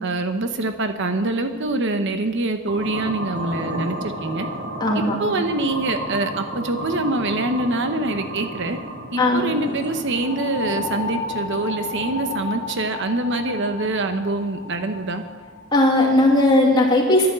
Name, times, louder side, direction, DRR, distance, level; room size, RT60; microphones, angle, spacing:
voice 1, 0.0-4.5 4.9-8.8 9.1-15.2, right 2 dB, 55° right, 7 dB, 0.9 m, -25 dB
sound 1, 2.7-16.7, left 1 dB, 90° right, 2.6 m, -32 dB
voice 2, 4.8-5.1 9.2-9.4 15.7-17.3, left 1 dB, 20° left, -3 dB, 2.7 m, -17 dB
11.5 x 11.0 x 7.5 m, 1.4 s
head